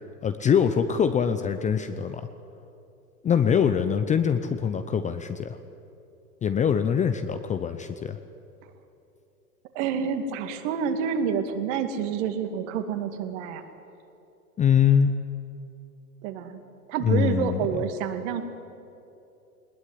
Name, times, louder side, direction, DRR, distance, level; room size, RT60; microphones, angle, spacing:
voice 1, 0.2-2.3 3.2-5.6 6.4-8.2 14.6-15.1 17.0-17.6, left 7 dB, 15° left, 9 dB, 0.7 m, -23 dB
voice 2, 9.7-13.6 16.2-16.6 16.9-18.4, right 7 dB, 50° right, 7 dB, 2.4 m, -28 dB
20.5 x 19.5 x 9.7 m, 2.8 s
hypercardioid pair, 105°, 47 cm